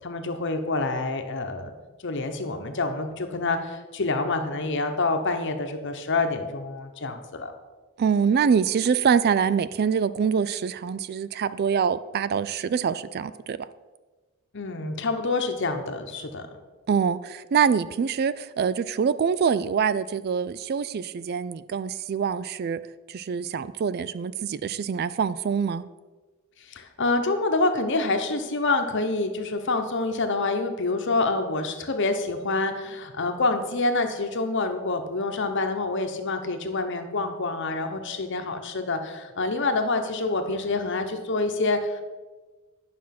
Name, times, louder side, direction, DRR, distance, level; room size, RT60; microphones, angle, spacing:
voice 1, 0.0-1.7 2.0-7.5 14.5-16.4 26.6-42.0, left 3 dB, 55° left, 1.0 m, -27 dB
voice 2, 8.0-13.7 16.9-22.8 23.1-25.9, right 6 dB, 45° right, 0.3 m, -25 dB
9.6 x 6.1 x 5.9 m
head